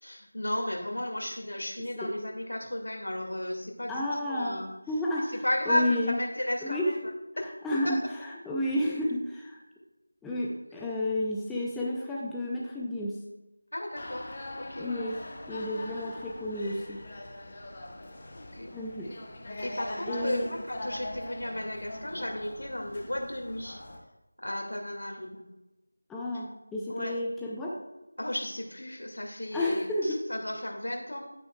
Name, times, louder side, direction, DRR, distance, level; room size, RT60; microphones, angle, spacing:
voice 1, 0.0-4.7 5.3-7.0 7.4-7.5 7.8-8.1 13.7-14.9 18.3-18.7 19.6-23.8 24.4-25.4 26.9-27.2 28.2-31.3, left 1 dB, 75° left, 2 dB, 2.1 m, -34 dB
voice 2, 3.9-4.6 4.9-6.2 6.6-6.9 7.6-8.0 8.4-9.6 10.2-13.2 14.8-15.2 15.5-17.0 18.7-19.1 20.1-20.5 26.1-27.8 29.5-30.2, left 1 dB, 5° left, -5 dB, 0.6 m, -31 dB
sound 1, 14.0-24.0, left 1 dB, 30° left, 1.2 m, -42 dB
11.0 x 9.3 x 2.3 m, 1.0 s
figure-of-eight pair, 170°, 0 cm